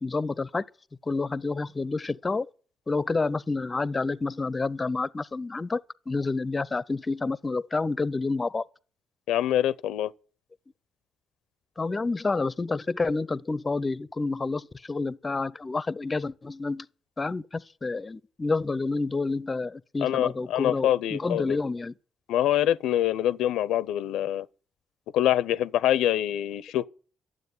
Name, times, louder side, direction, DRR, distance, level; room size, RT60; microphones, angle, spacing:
voice 1, 0.0-0.6 1.0-2.5 2.9-5.8 6.1-8.6 11.8-16.9 17.2-21.9, left 3 dB, 25° left, 0.5 m, -29 dB
voice 2, 9.3-10.1 20.0-21.6 22.3-24.5 25.1-26.9, left 12 dB, 85° left, 0.5 m, -25 dB
12.0 x 7.6 x 9.6 m
cardioid pair, 90°, 0 cm